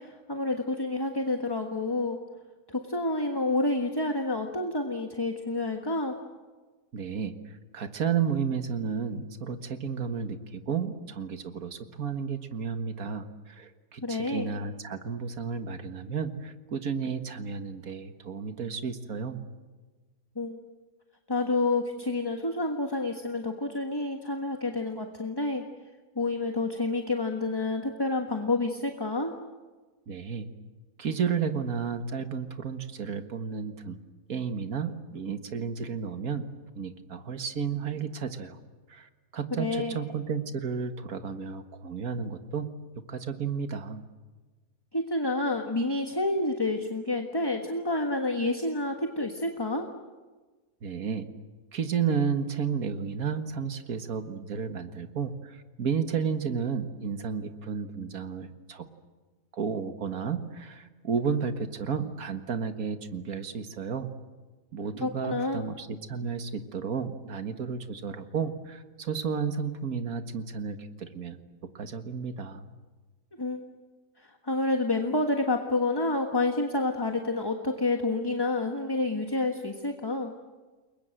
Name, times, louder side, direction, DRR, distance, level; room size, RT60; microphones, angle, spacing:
voice 1, 0.0-2.2 2.7-6.2 14.0-14.5 20.3-20.6 21.3-25.6 26.1-29.4 39.5-40.0 44.9-49.9 65.0-65.6 73.4-73.6 74.2-80.3, left 2 dB, 15° left, 4 dB, 1.4 m, -29 dB
voice 2, 6.9-19.4 30.1-30.5 31.0-34.0 34.3-36.5 36.8-38.6 38.9-42.7 43.1-44.0 50.8-51.3 51.7-58.9 59.5-64.1 64.7-72.7, right 6 dB, 60° right, 8 dB, 2.0 m, -32 dB
29.5 x 22.5 x 7.8 m, 1.3 s
omnidirectional pair, 1.8 m